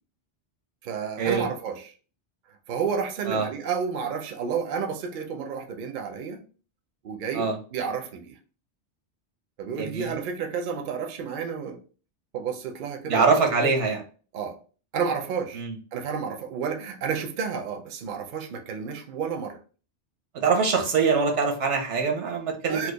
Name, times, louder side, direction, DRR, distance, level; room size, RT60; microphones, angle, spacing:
voice 1, 0.8-1.9 2.7-6.4 7.0-8.3 9.6-11.8 12.3-13.2 13.6-13.7 14.3-14.6 14.9-15.6 15.9-19.6 22.7-22.9, right 6 dB, 55° right, 5 dB, 0.6 m, -31 dB
voice 2, 9.8-10.1 13.1-14.0 15.5-15.7 20.3-22.9, right 5 dB, 90° right, 3 dB, 1.1 m, -23 dB
3.0 x 2.3 x 3.4 m, 0.38 s
omnidirectional pair, 1.2 m